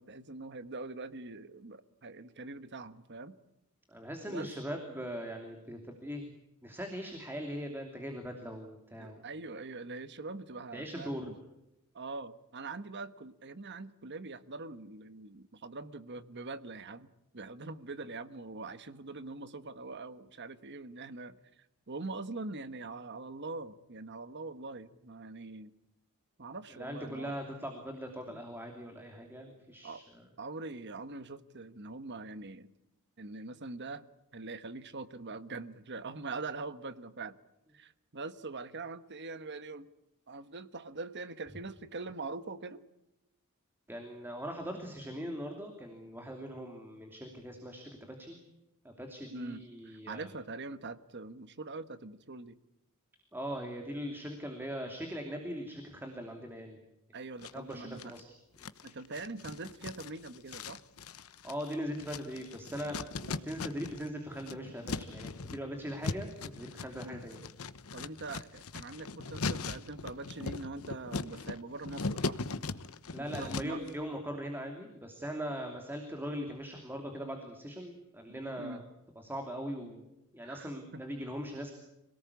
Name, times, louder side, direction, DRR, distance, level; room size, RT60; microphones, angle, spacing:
voice 1, 0.0-3.4 4.3-4.5 9.0-11.4 11.9-25.7 26.4-27.3 28.3-28.4 29.8-30.0 30.4-32.7 33.2-34.0 34.3-37.4 37.7-39.9 40.3-42.8 49.3-52.6 57.1-58.1 58.8-60.8 67.0-67.2 67.9-72.4 73.2-73.8 78.3-78.8 80.4-81.0, right 3 dB, 50° right, 12 dB, 1.3 m, -43 dB
voice 2, 3.9-6.3 6.6-9.2 10.7-11.3 26.7-30.2 43.9-48.4 48.8-50.3 53.3-56.8 57.5-58.3 61.4-67.4 73.1-78.8 79.2-80.1 80.3-81.7, equal, 10° right, 3 dB, 2.9 m, -40 dB
sound 1, 57.4-58.2 58.6-64.1 64.3-73.9, left 3 dB, 75° left, 1.1 m, -39 dB
26.0 x 18.5 x 8.4 m, 0.91 s
head